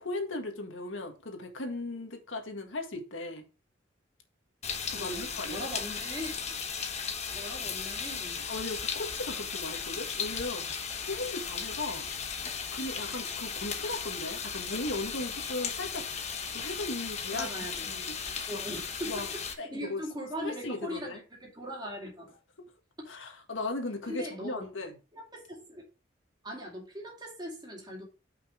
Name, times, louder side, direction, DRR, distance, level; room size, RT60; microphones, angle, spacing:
voice 1, 0.0-3.4 4.9-5.6 8.5-10.6 11.0-12.0 12.7-16.1 16.5-17.5 17.9-18.2 18.5-18.6 19.1-19.3 19.6-20.0 20.4-21.2 23.1-24.9, left 2 dB, 80° left, 1.7 m, -37 dB
sound 1, 4.6-19.5, left 6 dB, 35° left, 1.0 m, -36 dB
voice 2, 4.9-6.4 7.3-8.4 17.3-17.9 18.5-22.3 24.1-24.7 25.1-25.8 26.4-28.0, equal, 20° right, 2.5 m, -40 dB
5.8 x 5.3 x 5.0 m
head